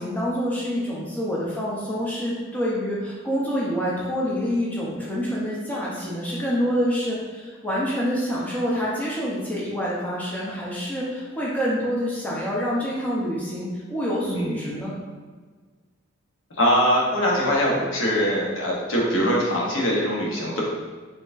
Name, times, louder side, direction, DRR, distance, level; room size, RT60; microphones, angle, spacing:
voice 1, 0.0-15.0, equal, 10° left, -6 dB, 0.6 m, -27 dB
voice 2, 14.2-14.8 16.6-20.6, equal, 70° left, -3 dB, 1.0 m, -22 dB
4.1 x 3.9 x 2.5 m, 1.5 s
head